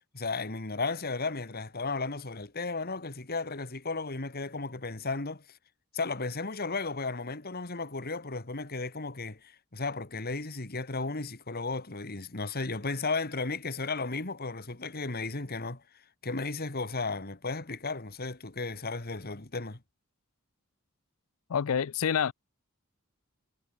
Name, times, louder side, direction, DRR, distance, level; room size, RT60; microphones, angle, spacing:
voice 1, 0.0-5.4 5.9-15.8 16.2-19.8, left 3 dB, 45° left, 2.0 m, -34 dB
voice 2, 21.5-22.3, left 7 dB, 70° left, 0.5 m, -27 dB
head